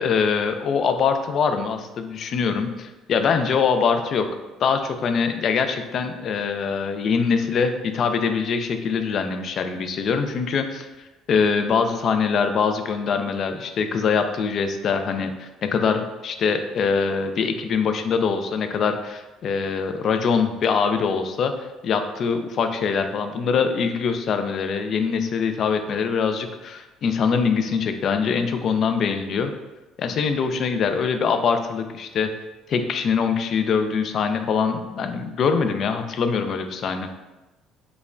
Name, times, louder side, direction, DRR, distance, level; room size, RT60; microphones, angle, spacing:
voice 1, 0.0-4.3 4.6-10.9 11.3-29.5 30.0-32.3 32.7-37.1, left 5 dB, 50° left, 7 dB, 0.3 m, -23 dB
4.9 x 2.2 x 2.4 m, 1.1 s
cardioid pair, 125°, 0 cm